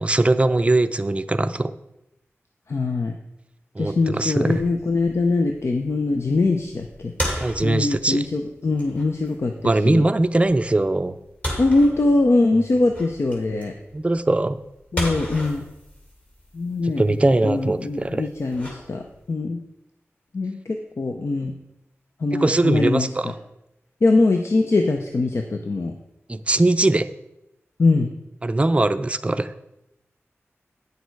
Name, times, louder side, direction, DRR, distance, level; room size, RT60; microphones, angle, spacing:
voice 1, 0.0-1.7 3.8-4.6 7.4-8.3 9.6-11.2 13.9-14.6 16.8-18.2 22.3-23.3 26.3-27.1 28.4-29.5, right 2 dB, 25° right, 10 dB, 0.4 m, -21 dB
voice 2, 2.7-3.1 3.8-7.1 7.6-10.0 11.6-13.7 14.9-15.7 16.5-19.6 20.3-21.5 22.2-23.1 24.0-25.9 27.8-28.1, left 3 dB, 65° left, 4 dB, 0.7 m, -22 dB
sound 1, 4.2-19.3, equal, 30° left, 2.4 m, -36 dB
9.4 x 6.6 x 4.7 m, 0.89 s
wide cardioid pair, 90°, 5 cm